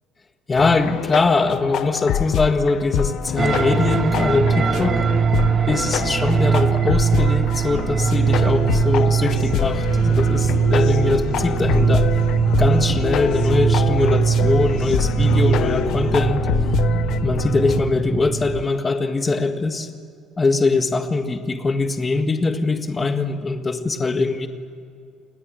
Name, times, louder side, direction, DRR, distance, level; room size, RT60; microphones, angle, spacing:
voice 1, 0.5-5.0 5.7-12.1 12.6-16.5 17.2-19.9 20.4-24.5, left 3 dB, 15° left, 6 dB, 1.7 m, -22 dB
sound 1, 0.6-17.8, left 10 dB, 50° left, 1.0 m, -26 dB
sound 2, 3.4-18.6, right 7 dB, 30° right, 1.0 m, -21 dB
Human voice, 8.3-16.3, left 10 dB, 85° left, 2.3 m, -42 dB
29.0 x 20.0 x 8.9 m, 2.4 s
cardioid pair, 175°, 0 cm